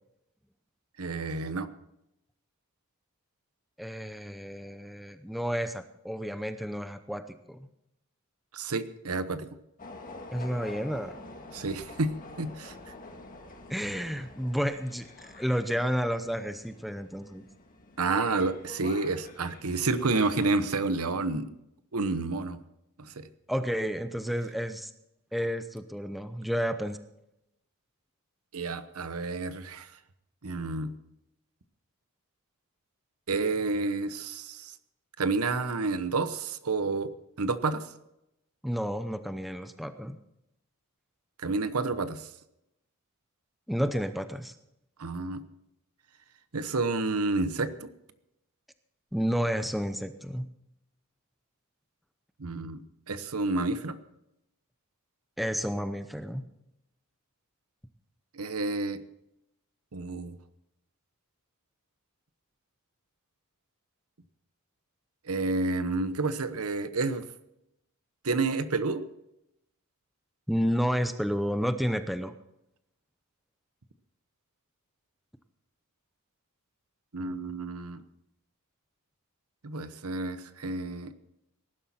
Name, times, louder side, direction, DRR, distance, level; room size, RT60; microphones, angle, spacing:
voice 1, 1.0-1.7 8.5-9.5 11.5-12.7 18.0-21.5 21.9-22.6 23.0-23.3 28.5-29.9 30.4-30.9 33.3-34.7 35.2-37.1 37.4-37.9 41.4-42.3 45.0-45.4 46.5-47.9 52.4-52.8 53.1-54.0 58.3-59.0 59.9-60.4 65.3-67.3 68.2-69.1 77.1-78.0 79.6-81.1, right 3 dB, 80° right, 12 dB, 1.0 m, -30 dB
voice 2, 3.8-7.7 10.3-11.2 13.7-17.5 23.5-24.9 25.3-27.0 38.6-40.2 43.7-44.5 49.1-50.4 55.4-56.4 70.5-72.3, equal, ahead, 9 dB, 0.7 m, -31 dB
sound 1, 9.8-20.7, left 2 dB, 40° left, 1.9 m, -47 dB
18.5 x 11.5 x 4.3 m, 0.83 s
head